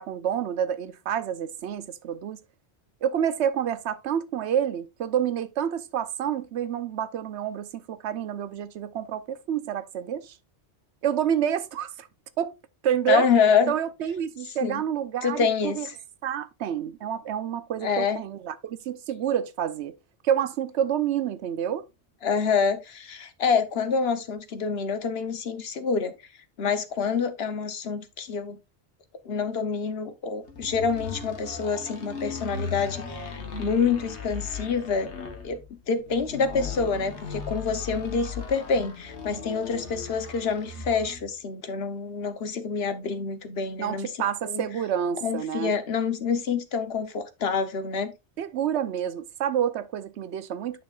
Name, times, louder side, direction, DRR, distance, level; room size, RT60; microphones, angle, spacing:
voice 1, 0.0-2.4 3.0-10.4 11.0-12.1 12.4-12.5 12.8-13.3 13.7-15.9 16.2-20.0 20.2-21.8 43.8-45.8 48.4-50.8, right 9 dB, 90° right, 1.0 m, -28 dB
voice 2, 13.1-13.7 14.6-14.8 15.2-15.8 17.8-18.2 22.2-26.1 26.6-28.6 29.2-35.1 35.4-35.6 35.9-44.1 44.5-44.6 45.2-48.1, left 5 dB, 70° left, 1.1 m, -27 dB
sound 1, 30.5-41.3, left 5 dB, 90° left, 1.6 m, -37 dB
9.5 x 6.1 x 2.4 m
omnidirectional pair, 1.1 m